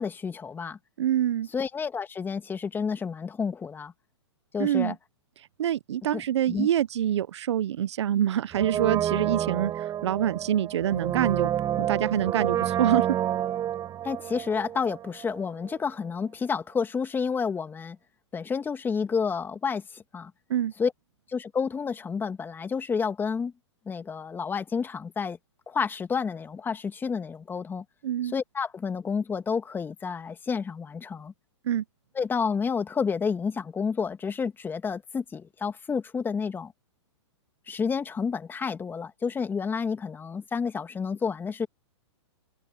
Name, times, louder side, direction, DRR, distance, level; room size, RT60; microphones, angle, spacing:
voice 1, 0.0-0.8 1.5-3.9 4.5-5.0 6.1-6.2 6.5-6.7 14.0-18.0 18.3-20.3 20.8-20.9 21.3-23.5 23.9-25.4 25.7-27.8 28.2-31.3 32.2-36.7 37.7-41.7, left 5 dB, 15° left, 1.9 m, -30 dB
voice 2, 1.0-1.5 4.6-4.9 5.6-11.5 11.8-13.1 20.5-20.7 28.0-28.3 31.6-31.8, right 11 dB, 65° right, 1.0 m, -26 dB
Brass instrument, 8.5-15.4 15.6-15.7, right 11 dB, 25° right, 6.5 m, -29 dB
open air
hypercardioid pair, 125°, 15 cm